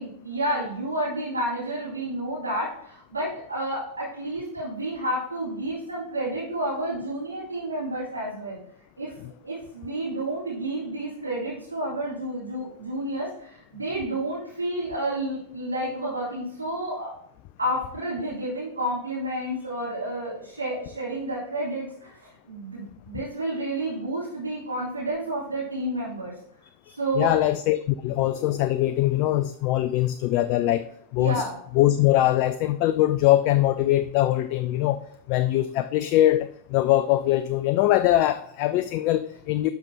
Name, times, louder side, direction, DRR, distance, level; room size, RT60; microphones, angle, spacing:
voice 1, 0.0-8.6 9.0-9.1 9.4-17.1 17.6-22.1 22.4-26.3 26.9-27.3 31.2-31.6, right 1 dB, 80° right, -10 dB, 3.6 m, -30 dB
voice 2, 26.9-30.8 31.1-31.4 31.7-35.0 35.3-39.7, left 14 dB, 45° left, 12 dB, 0.3 m, -22 dB
12.0 x 5.7 x 2.8 m, 0.67 s
figure-of-eight pair, 90°, 0 cm